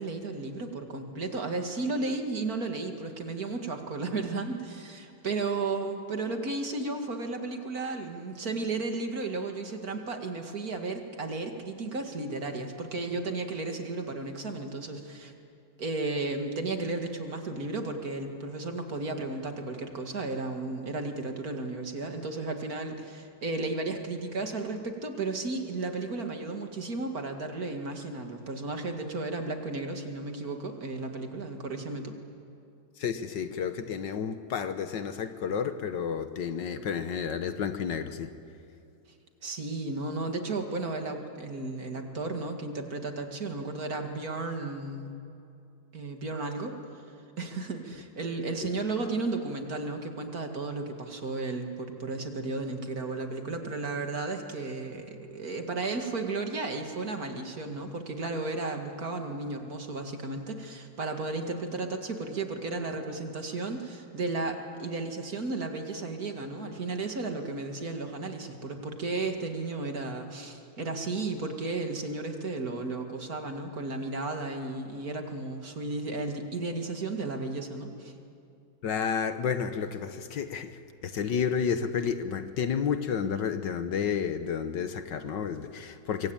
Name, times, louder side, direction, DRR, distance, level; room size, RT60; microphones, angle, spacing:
voice 1, 0.0-15.3 15.8-32.1 39.4-45.2 45.9-47.0 47.4-78.1, right 3 dB, 50° right, 4 dB, 2.5 m, -34 dB
voice 2, 33.0-38.3 78.8-86.3, left 7 dB, 65° left, 10 dB, 1.7 m, -31 dB
24.5 x 24.0 x 8.9 m, 2.6 s
omnidirectional pair, 2.1 m